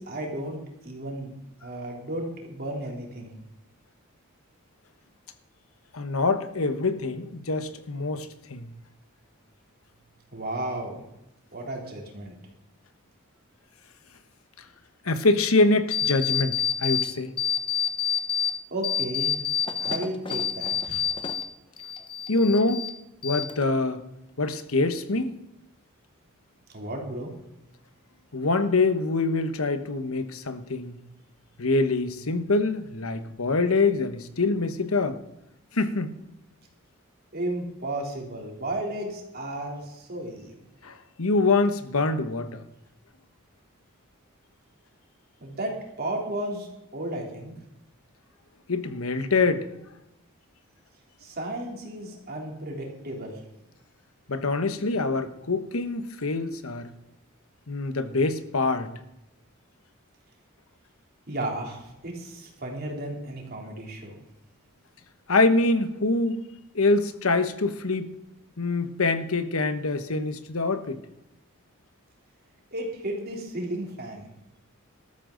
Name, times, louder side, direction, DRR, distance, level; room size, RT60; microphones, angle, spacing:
voice 1, 0.0-1.3 1.6-3.3 10.3-11.0 11.5-12.3 18.7-19.3 19.8-21.0 26.7-27.3 37.3-40.5 45.4-47.5 51.2-53.4 61.3-64.2 72.7-74.3, right 1 dB, 45° right, 3.4 m, -33 dB
voice 2, 5.9-8.7 15.0-16.5 16.8-17.3 22.3-22.9 23.2-24.0 24.4-25.3 28.3-31.0 31.6-35.2 35.7-36.1 40.8-42.6 48.7-49.7 54.3-56.9 57.7-58.9 65.3-66.4 66.7-68.1 68.6-71.0, left 3 dB, 75° left, 1.1 m, -25 dB
sound 1, 15.9-17.1 17.4-18.5 18.8-21.5 21.8-22.9 23.2-23.8, left 8 dB, 25° left, 1.0 m, -27 dB
14.0 x 13.0 x 3.9 m
head